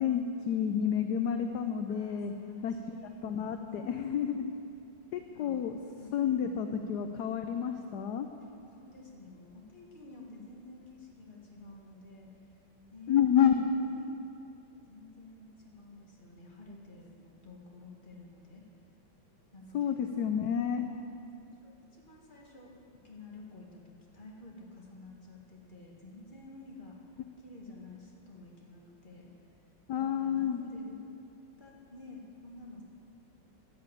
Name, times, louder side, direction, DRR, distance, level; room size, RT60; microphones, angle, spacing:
voice 1, 0.0-2.3 2.6-2.7 3.2-4.5 5.1-5.8 6.1-8.3 13.1-13.7 19.7-20.9 27.6-27.7 29.9-30.6, left 8 dB, 70° left, 7 dB, 1.1 m, -29 dB
voice 2, 1.9-3.3 3.7-4.4 5.2-5.7 6.0-6.5 8.4-12.6 12.9-14.1 14.9-18.6 19.5-20.0 20.8-21.1 21.6-22.8 23.0-27.0 27.4-29.6 29.9-31.0 31.6-32.8, left 2 dB, 25° left, -2 dB, 2.2 m, -50 dB
11.0 x 11.0 x 8.4 m, 2.6 s
omnidirectional pair, 2.1 m